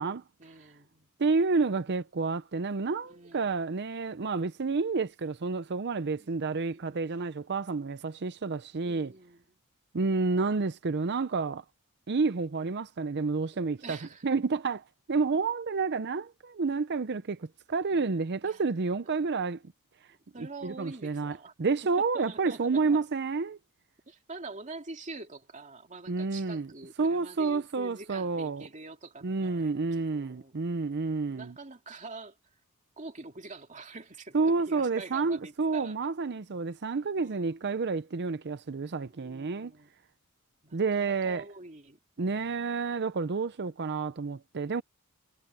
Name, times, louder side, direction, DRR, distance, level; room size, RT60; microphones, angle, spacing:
voice 1, 0.0-1.1 3.0-3.6 6.2-6.3 6.7-7.3 8.8-9.4 13.5-14.3 17.9-18.6 20.3-21.5 22.1-23.0 24.1-30.5 31.3-32.4 33.0-35.9 37.2-37.7 39.1-39.9 40.6-42.7, right 3 dB, 35° right, 2.5 m, -46 dB
voice 2, 1.2-9.1 9.9-11.6 12.1-14.0 14.2-19.6 20.6-23.6 26.1-26.7 27.0-28.6 29.2-31.5 34.3-39.7 40.7-41.4 42.2-44.8, right 4 dB, 50° right, 0.6 m, -29 dB
head